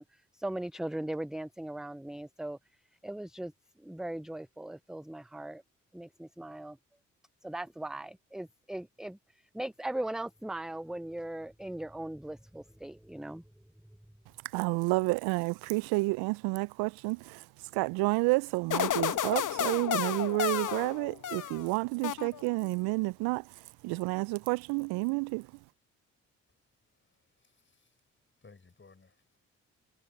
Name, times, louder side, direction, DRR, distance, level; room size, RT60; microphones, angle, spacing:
voice 1, 0.0-2.6 3.0-3.5 3.8-5.6 5.9-6.8 7.4-9.2 9.5-13.4, right 1 dB, ahead, 0.6 m, -39 dB
voice 2, 14.5-17.4 17.7-23.5 23.8-25.5, right 25 dB, 70° right, 0.9 m, -30 dB
sound 1, 18.7-21.7 22.0-22.7, left 10 dB, 50° left, 1.5 m, -32 dB
voice 3, 27.4-27.9 28.4-29.4, left 4 dB, 30° left, 6.6 m, -59 dB
hypercardioid pair, 40°, 38 cm